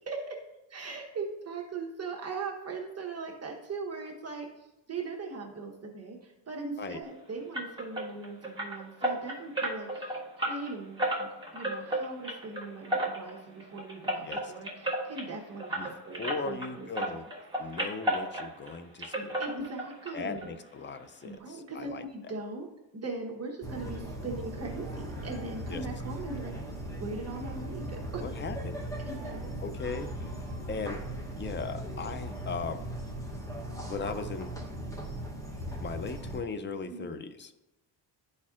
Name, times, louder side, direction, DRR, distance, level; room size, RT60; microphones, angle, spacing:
voice 1, 0.1-0.4 0.7-4.5 4.9-10.2 10.5-17.1 19.1-20.5 21.2-22.7 22.9-26.6 26.9-28.3 29.0-29.5 36.9-37.1, right 3 dB, 30° right, -1 dB, 1.0 m, -40 dB
sound 1, 7.5-16.7 16.9-18.7 19.0-20.1 20.4-20.5 20.9-21.0 21.4-21.5, right 1 dB, 10° right, 1.5 m, -33 dB
voice 2, 16.2-17.2 17.6-19.3 20.1-22.0 25.7-25.8 28.2-28.8 29.6-30.3 30.7-31.0 31.4-32.9 33.8-34.6 35.8-37.6, left 4 dB, 25° left, 11 dB, 0.4 m, -38 dB
sound 2, 23.6-36.4, right 1 dB, 5° left, 0.9 m, -38 dB
12.0 x 4.3 x 2.4 m, 0.96 s
cardioid pair, 115°, 47 cm